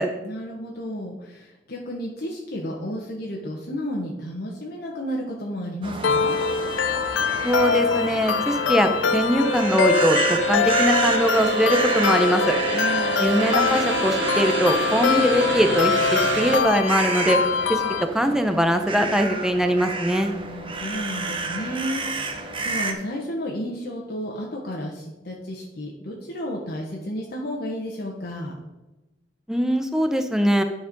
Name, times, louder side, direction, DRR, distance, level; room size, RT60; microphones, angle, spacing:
voice 1, 0.2-6.3 12.7-13.2 20.5-28.5, equal, 60° left, -2 dB, 1.3 m, -32 dB
sound 1, 5.8-22.9, right 3 dB, 30° right, 0.9 m, -31 dB
sound 2, 6.0-18.0, left 6 dB, 90° left, 0.5 m, -24 dB
voice 2, 7.4-12.5 13.2-17.4 17.7-17.8 18.1-20.3 29.5-30.6, equal, 5° right, 6 dB, 0.7 m, -22 dB
sound 3, 9.4-16.6, right 2 dB, 65° right, 1.2 m, -27 dB
10.5 x 4.6 x 5.3 m, 1.0 s
head